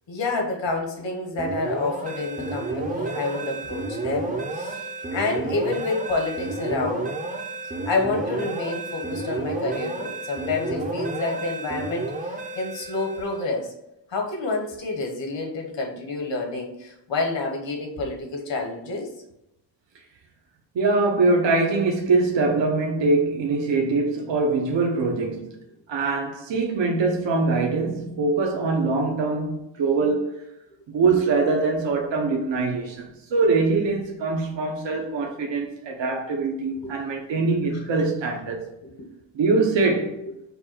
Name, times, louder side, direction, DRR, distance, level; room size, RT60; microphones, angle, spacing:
voice 1, 0.1-7.1 7.8-13.7 14.1-19.1 36.3-36.4 36.8-36.9 37.7-37.8, left 3 dB, 75° left, 1.2 m, -29 dB
sound 1, 1.4-13.5, right 2 dB, 20° right, 0.5 m, -31 dB
voice 2, 20.7-25.6 25.9-30.4 30.9-38.7 39.3-40.2, right 3 dB, 70° right, 0.8 m, -23 dB
5.3 x 2.3 x 4.3 m
wide cardioid pair, 165°, 45 cm